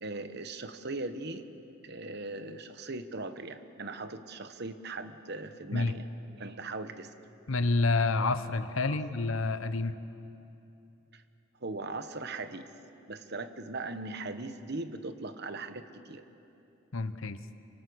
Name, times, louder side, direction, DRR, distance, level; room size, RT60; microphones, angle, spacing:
voice 1, 0.0-1.5 1.8-6.1 6.4-7.1 8.8-9.0 11.1-11.2 11.6-12.7 13.1-16.2, right 3 dB, 50° right, 9 dB, 1.2 m, -39 dB
voice 2, 7.5-10.0 16.9-17.4, left 3 dB, 75° left, 12 dB, 0.9 m, -28 dB
27.0 x 24.5 x 6.4 m, 2.8 s
head